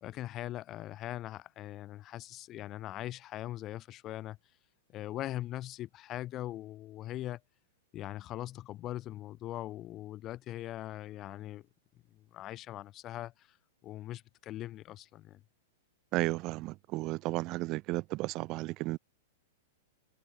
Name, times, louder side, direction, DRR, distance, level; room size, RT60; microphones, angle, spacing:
voice 1, 0.0-4.4 4.9-7.4 7.9-11.7 12.1-13.6 13.8-15.4, left 14 dB, 35° left, 1.8 m, -41 dB
voice 2, 16.1-19.0, right 20 dB, 40° right, 1.2 m, -33 dB
figure-of-eight pair, 105°, 0 cm